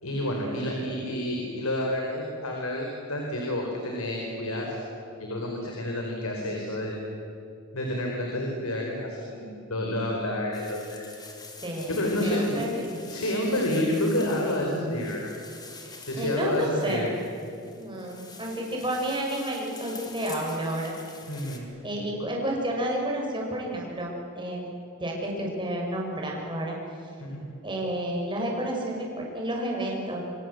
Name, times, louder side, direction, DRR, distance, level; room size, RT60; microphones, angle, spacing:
voice 1, 0.0-4.8 5.2-6.9 7.7-11.1 11.9-12.6 13.1-15.3 16.0-17.1 21.3-21.7 27.2-27.4, left 1 dB, 80° left, 0 dB, 4.7 m, -29 dB
sound 1, 10.5-21.6, left 3 dB, 20° left, 3.4 m, -46 dB
voice 2, 11.6-13.0 16.1-17.1 17.8-20.9 21.8-24.7 25.0-26.8 27.6-30.2, right 1 dB, 25° right, -1 dB, 6.3 m, -30 dB
27.0 x 25.5 x 8.0 m, 2.7 s
head